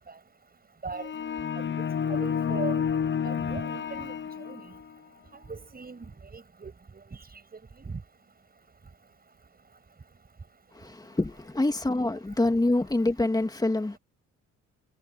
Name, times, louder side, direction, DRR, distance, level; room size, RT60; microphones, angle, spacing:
sound 1, 0.9-4.9, left 7 dB, 40° left, 0.8 m, -30 dB
voice 1, 1.8-2.8 3.2-4.1 4.5-4.7 5.5-6.1 6.3-6.7 7.8-8.0, right 4 dB, 30° right, 7.4 m, -38 dB
voice 2, 10.7-14.0, left 2 dB, 15° left, 2.2 m, -26 dB
cardioid pair, 90°, 30 cm